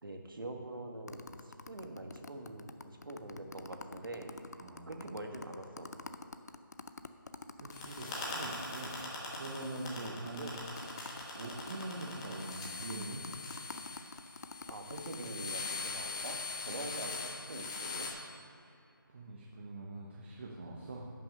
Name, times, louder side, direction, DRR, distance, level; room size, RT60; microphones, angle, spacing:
voice 1, 0.0-4.3 4.9-5.9 9.9-10.6 14.7-16.4 16.6-18.1, right 2 dB, 70° right, 3 dB, 1.5 m, -44 dB
sound 1, 1.1-9.0 9.3-9.4 9.6-15.3, left 4 dB, 50° left, 0.5 m, -47 dB
voice 2, 4.6-5.2 7.6-8.9 9.3-10.6 11.3-13.3 18.6-18.7 19.1-21.1, right 2 dB, 30° right, -2 dB, 0.8 m, -44 dB
sound 2, 7.7-18.1, left 4 dB, 15° left, 1.1 m, -42 dB
10.5 x 6.3 x 5.5 m, 2.7 s
figure-of-eight pair, 170°, 12 cm